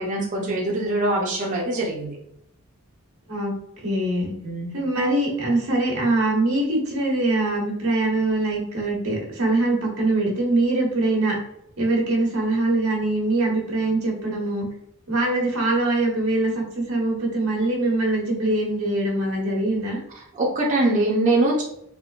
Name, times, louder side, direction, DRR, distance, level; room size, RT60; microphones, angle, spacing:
voice 1, 0.0-2.2 4.4-4.7 20.4-21.6, right 2 dB, 35° right, -3 dB, 0.6 m, -23 dB
voice 2, 3.8-4.3 4.7-11.4 11.8-14.7 15.1-20.0, right 2 dB, 85° right, -1 dB, 1.3 m, -23 dB
3.6 x 3.1 x 2.4 m, 0.74 s
head